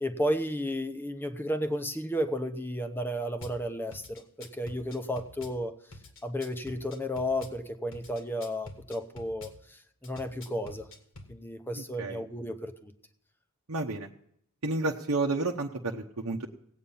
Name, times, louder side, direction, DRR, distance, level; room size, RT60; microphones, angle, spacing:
voice 1, 0.0-5.8 6.2-10.9 11.3-12.9, equal, 10° left, 7 dB, 0.8 m, -33 dB
Drum kit / Bass drum, 3.4-3.6 3.9-5.6 5.9-7.6 7.9-9.6 10.0-11.3, left 2 dB, 65° left, 1.6 m, -46 dB
voice 2, 11.7-12.2 13.7-14.1 14.6-16.5, right 3 dB, 80° right, 0 dB, 1.0 m, -31 dB
17.5 x 8.6 x 5.6 m, 0.71 s
head